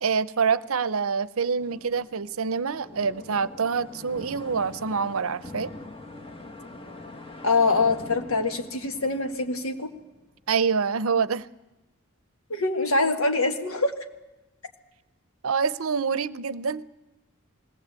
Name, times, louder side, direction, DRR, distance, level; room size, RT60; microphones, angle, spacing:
voice 1, 0.0-5.7 10.5-11.5 15.4-16.8, right 5 dB, 70° right, 18 dB, 0.7 m, -26 dB
sound 1, 1.6-10.4, left 2 dB, 25° left, 1.4 m, -43 dB
voice 2, 7.4-9.9 12.5-13.9, left 3 dB, 70° left, 6 dB, 1.7 m, -24 dB
20.5 x 17.5 x 8.2 m, 1.0 s
head